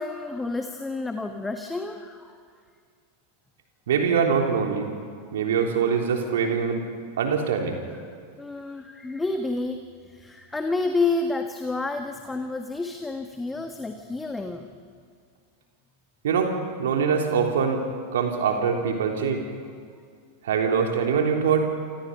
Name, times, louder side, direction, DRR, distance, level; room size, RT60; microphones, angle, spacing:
voice 1, 0.0-2.4 8.3-9.8 10.0-14.8, left 3 dB, 10° left, 6 dB, 1.4 m, -29 dB
voice 2, 3.9-4.9 5.3-6.8 7.2-7.8 16.2-16.5 16.8-17.8 18.1-19.4 20.4-21.7, right 6 dB, 60° right, 2 dB, 3.5 m, -23 dB
28.5 x 26.0 x 5.5 m, 2.1 s
figure-of-eight pair, 90°, 0 cm